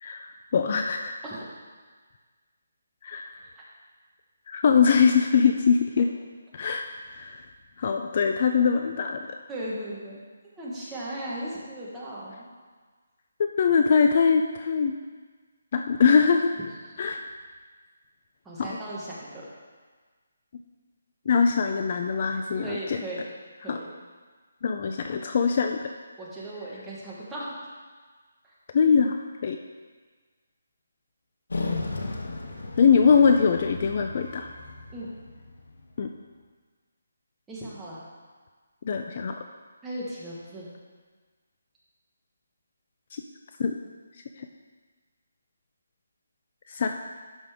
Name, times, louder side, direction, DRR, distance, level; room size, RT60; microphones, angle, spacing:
voice 1, 0.0-1.2 3.0-3.3 4.5-6.1 6.5-6.8 7.1-7.4 7.8-9.4 13.6-15.0 15.7-16.5 17.0-17.2 18.6-18.7 21.3-23.0 23.7-23.8 24.6-25.9 28.7-29.6 32.8-34.5 36.0-36.1 38.8-39.3 43.1-43.2 43.6-43.8 44.4-44.5 46.7-46.9, left 6 dB, 35° left, 5 dB, 0.4 m, -22 dB
voice 2, 3.2-3.6 9.5-10.2 10.6-12.5 16.8-16.9 18.4-19.5 22.6-23.2 23.6-23.9 26.2-27.6 28.4-28.5 34.9-35.1 37.5-38.0 39.8-40.7, right 1 dB, 5° right, -7 dB, 1.2 m, -37 dB
sound 1, 31.5-36.1, left 3 dB, 85° left, 1.1 m, -35 dB
11.5 x 5.3 x 3.5 m, 1.5 s
hypercardioid pair, 170°, 0 cm